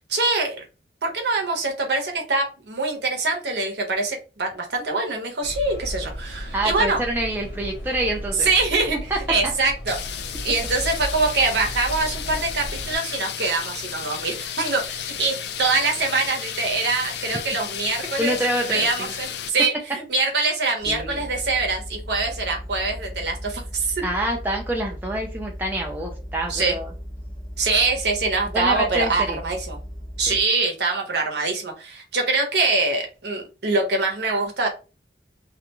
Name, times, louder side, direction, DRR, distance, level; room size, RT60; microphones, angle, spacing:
voice 1, 0.1-0.6 1.0-7.0 8.4-9.0 9.3-10.2 10.4-18.4 18.7-24.0 26.5-26.8 27.6-29.8 30.2-34.7, right 3 dB, 70° right, 1 dB, 0.8 m, -24 dB
sound 1, 5.4-13.0, equal, 85° left, 0.7 m, -34 dB
voice 2, 6.5-8.5 9.1-9.2 18.2-19.1 20.8-21.2 24.0-26.9 28.5-29.4 30.3-30.4, right 1 dB, 10° right, 0 dB, 0.3 m, -26 dB
sound 2, 9.9-19.5, left 9 dB, 70° left, 0.3 m, -33 dB
sound 3, 20.8-30.4, equal, 20° left, 0.7 m, -37 dB
2.4 x 2.2 x 2.9 m, 0.32 s
head